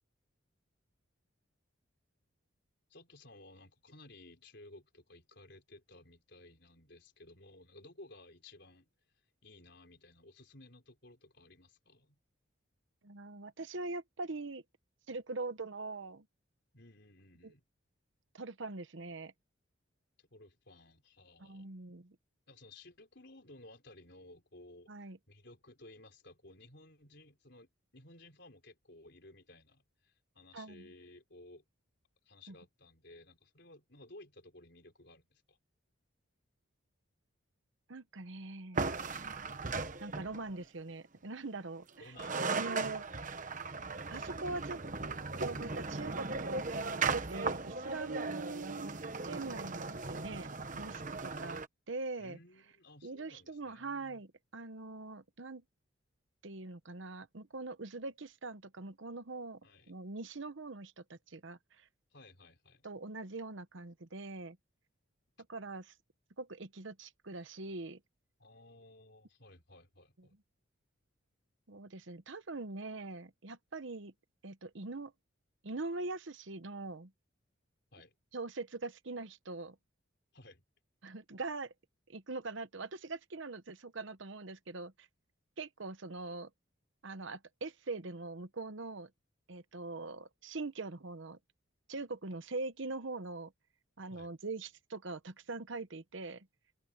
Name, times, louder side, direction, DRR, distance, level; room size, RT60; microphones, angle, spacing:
voice 1, 2.9-8.9 9.4-12.2 16.7-17.6 20.2-21.7 22.5-27.7 27.9-31.6 32.2-35.6 42.0-42.9 52.2-54.2 59.6-59.9 62.1-62.9 68.4-70.4 77.9-78.1 80.3-80.6 94.1-94.3, left 2 dB, 55° left, 4.9 m, -57 dB
voice 2, 13.0-14.6 15.1-16.2 17.4-17.5 18.3-19.3 21.4-22.2 24.9-25.2 30.5-30.9 32.5-32.6 37.9-38.9 40.0-42.1 42.5-43.0 44.1-44.8 45.4-48.9 49.3-51.6 51.9-52.4 53.0-55.6 56.4-59.6 59.9-61.9 62.8-64.6 65.5-65.9 66.4-68.0 70.2-70.3 71.7-74.1 74.4-75.1 75.6-77.1 78.3-79.7 81.0-81.7 82.1-85.1 85.6-86.5 87.0-89.1 89.5-91.4 91.9-93.5 94.0-96.5, right 3 dB, 65° right, 1.0 m, -42 dB
sound 1, 38.7-40.5 41.9-42.0 42.2-51.7, right 4 dB, 40° right, 1.2 m, -37 dB
head